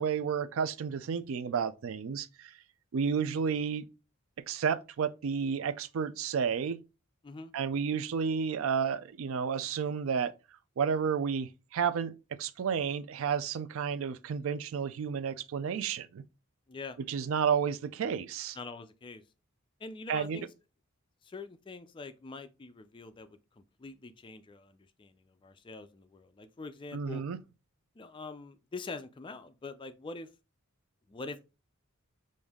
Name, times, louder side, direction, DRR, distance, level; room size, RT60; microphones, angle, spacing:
voice 1, 0.0-2.5 2.9-3.8 4.5-6.8 7.5-10.3 10.8-12.1 12.4-16.2 17.1-18.6 20.1-20.4 26.9-27.4, right 6 dB, 65° right, 0.3 m, -31 dB
voice 2, 18.5-19.2 19.8-20.5 21.2-27.2 28.0-30.3 31.1-31.4, left 3 dB, 25° left, 0.3 m, -44 dB
5.1 x 2.6 x 3.5 m
head